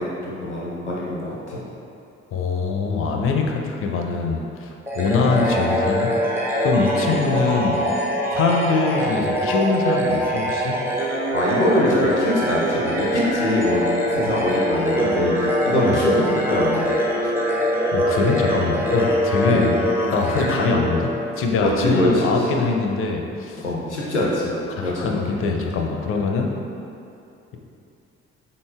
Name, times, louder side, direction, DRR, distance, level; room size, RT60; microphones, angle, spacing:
voice 1, 0.0-1.6 5.2-5.3 7.1-7.3 10.9-13.8 14.1-16.9 19.4-19.6 21.6-22.5 23.6-25.4, left 1 dB, 90° left, -5 dB, 0.5 m, -23 dB
voice 2, 2.3-6.1 6.6-7.8 8.3-10.8 15.8-16.0 17.2-17.3 17.9-19.8 20.1-23.6 24.7-26.5, left 4 dB, 40° left, 1 dB, 0.5 m, -23 dB
sound 1, 4.9-21.6, equal, 5° right, 0.6 m, -23 dB
3.8 x 3.7 x 2.3 m, 2.7 s
figure-of-eight pair, 45°, 34 cm